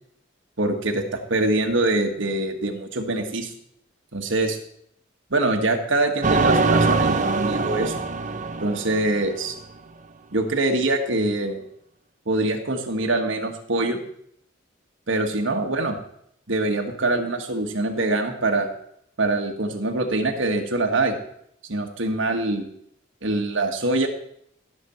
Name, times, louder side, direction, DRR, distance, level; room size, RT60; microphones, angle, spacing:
voice 1, 0.6-1.0 1.3-3.5 4.1-4.6 5.3-8.0 8.6-9.5 10.3-11.6 12.3-14.0 15.1-16.0 16.5-18.7 19.2-21.2 21.7-22.7 23.2-24.1, right 2 dB, 75° right, 3 dB, 1.5 m, -24 dB
sound 1, 6.2-9.6, right 3 dB, 40° right, 0.7 m, -23 dB
14.5 x 6.7 x 4.4 m, 0.70 s
head